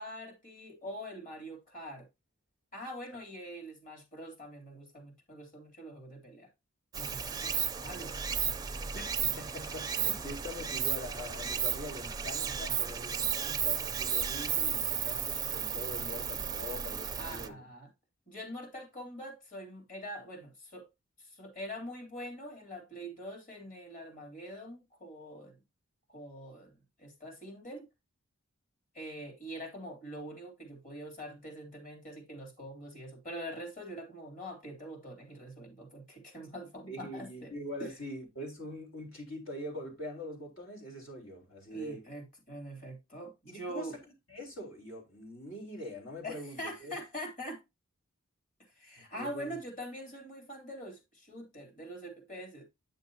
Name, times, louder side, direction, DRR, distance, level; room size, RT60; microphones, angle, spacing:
voice 1, 0.0-2.1 2.7-6.5 7.0-8.1 13.2-13.3 17.2-17.9 18.3-20.9 21.2-25.5 26.1-27.9 28.9-37.5 37.8-37.9 41.7-44.0 46.2-47.6 48.8-52.6, equal, 40° left, 3.2 m, -44 dB
Stream, 6.9-17.5, right 8 dB, 20° right, 0.5 m, -34 dB
voice 2, 8.9-17.6 36.9-42.1 43.5-43.9 44.3-47.0 49.1-49.6, left 1 dB, 70° left, 3.9 m, -43 dB
9.3 x 6.5 x 2.8 m
head